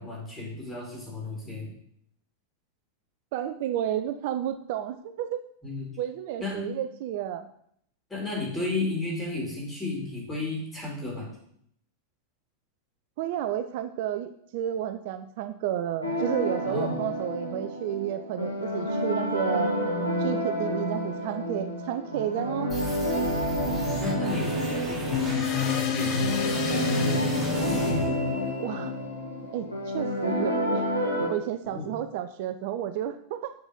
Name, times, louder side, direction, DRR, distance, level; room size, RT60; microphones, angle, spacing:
voice 1, 0.0-1.7 5.6-6.0 6.4-6.7 8.1-11.3 16.6-17.0 23.2-28.0 31.6-31.9, left 2 dB, 10° left, -3 dB, 4.6 m, -34 dB
voice 2, 3.3-5.4 6.0-7.5 13.2-19.7 20.2-22.8 28.6-28.9 29.5-30.9 31.3-33.5, right 11 dB, 50° right, 10 dB, 0.5 m, -31 dB
sound 1, 16.0-31.3, equal, 85° left, 1.9 m, -29 dB
sound 2, 22.7-28.7, right 1 dB, 5° right, 3.4 m, -35 dB
sound 3, 25.1-29.9, left 12 dB, 40° left, 0.6 m, -30 dB
7.6 x 7.0 x 5.3 m, 0.68 s
figure-of-eight pair, 90°, 0 cm